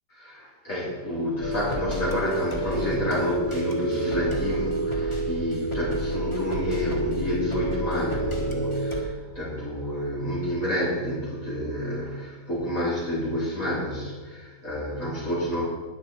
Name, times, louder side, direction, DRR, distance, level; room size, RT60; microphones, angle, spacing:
voice 1, 0.1-15.6, equal, 50° left, -8 dB, 3.8 m, -29 dB
sound 1, 1.4-9.0, right 1 dB, 20° left, 1.7 m, -29 dB
20.0 x 7.1 x 4.4 m, 1.4 s
omnidirectional pair, 1.8 m